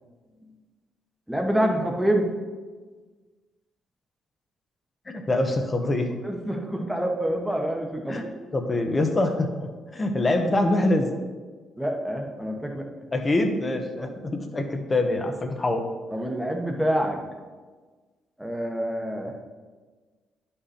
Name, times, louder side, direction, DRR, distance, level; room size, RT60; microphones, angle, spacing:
voice 1, 1.3-2.3 6.2-8.2 11.8-12.9 14.0-14.1 16.1-17.2 18.4-19.3, right 1 dB, 5° right, 2 dB, 1.3 m, -26 dB
voice 2, 5.1-6.1 8.1-8.2 8.5-11.1 13.1-15.8, left 2 dB, 25° left, 5 dB, 1.1 m, -25 dB
10.5 x 5.5 x 4.3 m, 1.4 s
cardioid pair, 90°, 0 cm